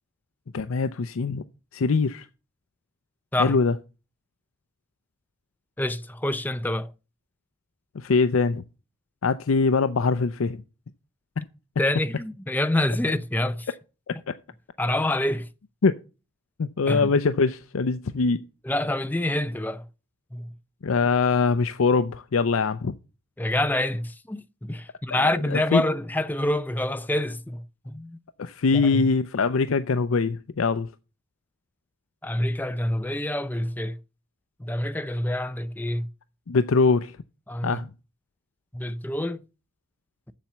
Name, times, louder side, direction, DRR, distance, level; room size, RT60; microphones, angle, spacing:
voice 1, 0.5-1.4 1.7-2.3 3.4-3.8 7.9-8.6 9.2-10.6 11.4-11.5 14.1-14.3 15.8-16.0 16.6-18.4 20.8-23.0 25.1-25.8 28.4-30.9 36.5-37.2 37.6-37.9, left 4 dB, 85° left, 0.5 m, -23 dB
voice 2, 5.8-6.9 11.8-13.7 14.8-15.5 16.9-17.1 18.6-19.8 20.3-20.5 23.4-28.2 28.7-29.0 32.2-34.0 34.6-36.1 37.5-37.8 38.7-39.4, left 1 dB, 10° left, 0.5 m, -27 dB
7.5 x 7.1 x 6.8 m
head